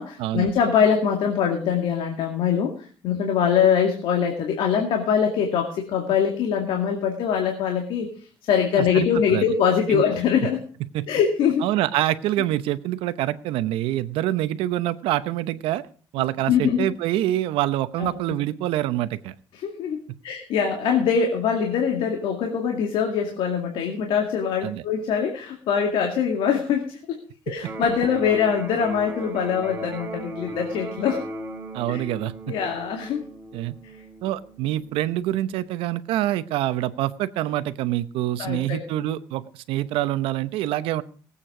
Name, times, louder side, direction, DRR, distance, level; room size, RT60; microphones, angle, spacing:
voice 1, 0.0-8.1 8.5-10.6 11.1-11.7 16.5-16.9 18.0-18.2 19.5-20.0 20.2-27.2 27.5-31.2 31.9-32.0 32.5-33.2 38.4-38.8, left 7 dB, 70° left, 3 dB, 2.2 m, -23 dB
voice 2, 8.8-9.4 9.9-10.0 10.8-11.1 11.6-15.8 16.1-19.3 24.6-24.8 27.5-27.6 31.7-32.5 33.5-33.7 34.2-41.0, right 14 dB, 85° right, 14 dB, 0.9 m, -26 dB
Electric guitar, 27.6-35.6, right 1 dB, 25° right, 2.7 m, -37 dB
19.0 x 8.5 x 4.9 m, 0.42 s
cardioid pair, 135°, 9 cm